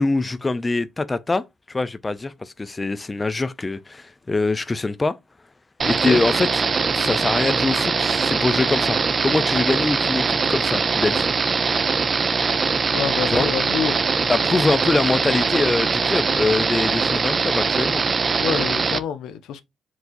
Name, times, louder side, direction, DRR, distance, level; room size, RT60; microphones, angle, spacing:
voice 1, 0.0-5.2 5.8-6.5 6.9-11.3 13.3-13.5 14.3-18.0, left 3 dB, 20° left, 0.4 m, -23 dB
sound 1, 5.8-19.0, right 5 dB, 40° right, 0.5 m, -22 dB
voice 2, 12.9-14.0 18.4-19.6, left 8 dB, 85° left, 0.7 m, -27 dB
4.6 x 3.8 x 2.6 m
cardioid pair, 90°, 0 cm